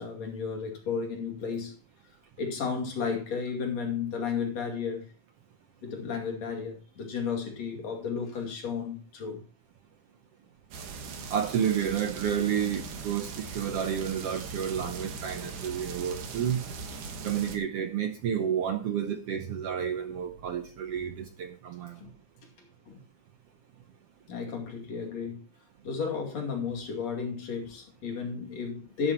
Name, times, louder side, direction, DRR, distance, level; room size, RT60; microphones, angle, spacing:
voice 1, 0.0-1.8 2.4-5.1 5.8-9.4 22.0-22.1 22.9-23.0 24.3-25.4 25.8-29.1, left 6 dB, 60° left, 2 dB, 3.6 m, -33 dB
sound 1, 10.7-17.6, right 4 dB, 85° right, 3.2 m, -40 dB
voice 2, 11.3-16.6 17.2-22.0, right 8 dB, 65° right, 6 dB, 1.6 m, -30 dB
12.0 x 11.5 x 3.0 m, 0.36 s
omnidirectional pair, 3.5 m